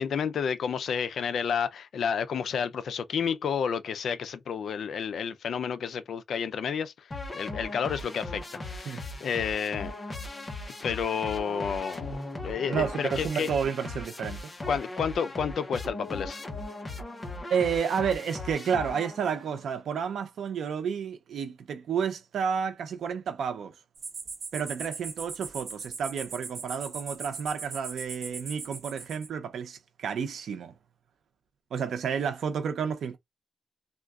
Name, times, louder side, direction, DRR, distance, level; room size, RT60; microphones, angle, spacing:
voice 1, 0.0-7.1 7.3-9.9 10.8-13.5 14.7-16.4, left 7 dB, 70° left, 0.4 m, -30 dB
sound 1, 7.1-19.5, left 2 dB, 20° left, 0.7 m, -38 dB
voice 2, 12.6-14.5 17.5-23.7 24.5-30.7 31.7-33.2, right 7 dB, 85° right, 0.6 m, -31 dB
sound 2, 24.0-29.3, right 5 dB, 55° right, 1.0 m, -39 dB
3.6 x 2.2 x 2.3 m
wide cardioid pair, 150°, 0 cm